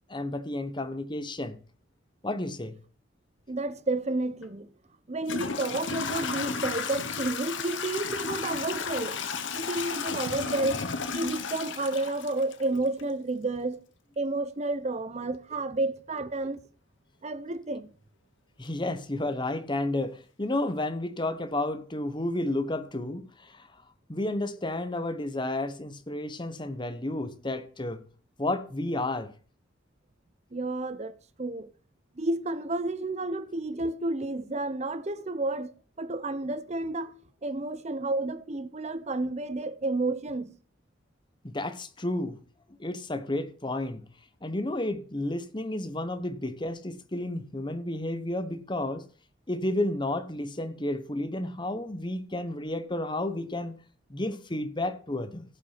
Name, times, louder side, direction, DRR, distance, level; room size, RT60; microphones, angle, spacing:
voice 1, 0.1-1.6 2.2-2.8 18.6-23.7 24.1-28.0 28.4-29.3 41.4-42.4 42.8-44.1 44.4-49.0 49.5-53.8 54.1-55.4, left 1 dB, 25° left, 1.1 m, -31 dB
voice 2, 3.5-4.7 5.1-9.2 9.5-10.9 11.1-13.8 14.2-16.6 17.2-17.9 30.5-31.7 32.2-40.5, right 2 dB, 35° right, 0.7 m, -31 dB
Toilet flush / Trickle dribble, 4.4-4.5 5.2-13.0, left 5 dB, 75° left, 1.3 m, -33 dB
15.5 x 6.1 x 5.8 m
head